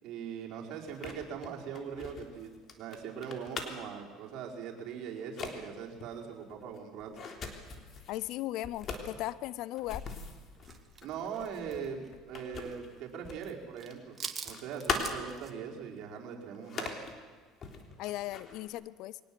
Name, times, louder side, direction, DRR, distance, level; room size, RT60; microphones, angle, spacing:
voice 1, 0.0-2.5 2.8-7.1 11.0-14.2 14.4-16.9, right 7 dB, 65° right, 0 dB, 4.7 m, -41 dB
sound 1, 0.8-4.0 4.7-4.9 5.2-5.5 6.0-8.1 8.6-13.5 13.8-15.5 15.9-16.0 16.5-17.1 17.6-18.7, left 5 dB, 40° left, 3.5 m, -41 dB
voice 2, 8.1-10.0 18.0-19.2, left 15 dB, 70° left, 19 dB, 0.6 m, -37 dB
sound 2, 10.6-12.8 13.1-13.5 13.8-15.5, right 6 dB, 30° right, 2.0 m, -44 dB
23.5 x 19.0 x 7.8 m, 1.5 s
supercardioid pair, 110°, 0 cm